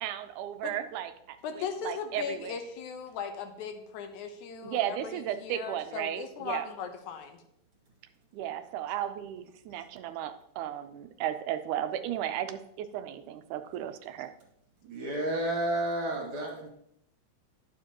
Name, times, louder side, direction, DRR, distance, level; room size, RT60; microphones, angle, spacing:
voice 1, 0.0-2.6 4.6-6.7 8.3-14.3, right 11 dB, 90° right, 9 dB, 2.1 m, -35 dB
voice 2, 1.4-7.4, left 7 dB, 80° left, 7 dB, 2.2 m, -38 dB
voice 3, 14.9-16.7, right 1 dB, 55° right, 0 dB, 2.5 m, -31 dB
11.0 x 7.2 x 2.9 m, 0.75 s
omnidirectional pair, 3.5 m